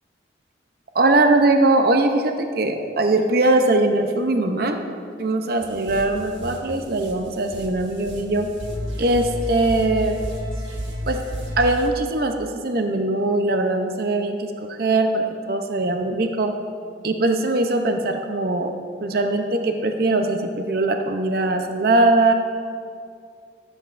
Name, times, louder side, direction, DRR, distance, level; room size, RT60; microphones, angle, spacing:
voice 1, 0.9-4.8 5.2-8.5 9.0-10.1 11.1-11.2 11.6-16.5 17.0-22.3, right 2 dB, 55° right, 5 dB, 0.6 m, -21 dB
sound 1, 5.6-11.9, equal, 90° right, 1.3 m, -32 dB
18.0 x 7.8 x 2.5 m, 2.2 s
head